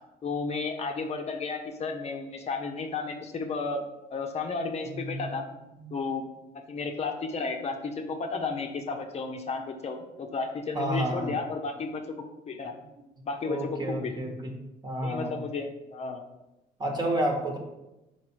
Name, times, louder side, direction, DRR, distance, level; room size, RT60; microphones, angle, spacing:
voice 1, 0.2-3.8 4.1-5.4 5.9-6.3 6.7-12.0 12.5-12.7 13.3-13.6 13.9-14.1 15.0-16.2, left 4 dB, 40° left, 4 dB, 0.7 m, -33 dB
voice 2, 4.9-5.3 5.7-5.9 10.7-11.3 13.4-15.4 16.8-17.6, right 1 dB, 25° right, 2 dB, 1.2 m, -31 dB
4.8 x 4.6 x 4.5 m, 0.95 s
cardioid pair, 110°, 17 cm